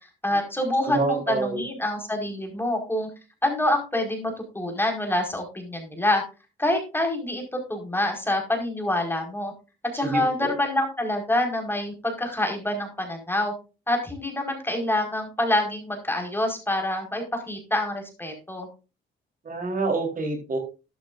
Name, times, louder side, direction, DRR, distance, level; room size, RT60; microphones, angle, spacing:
voice 1, 0.2-3.1 3.4-6.2 6.6-9.5 9.9-13.5 13.9-18.7, left 1 dB, 10° left, 3 dB, 4.9 m, -26 dB
voice 2, 0.8-1.6 10.0-10.5 19.4-20.6, right 3 dB, 45° right, 3 dB, 3.9 m, -27 dB
13.0 x 11.5 x 2.6 m, 0.31 s
cardioid pair, 90°, 20 cm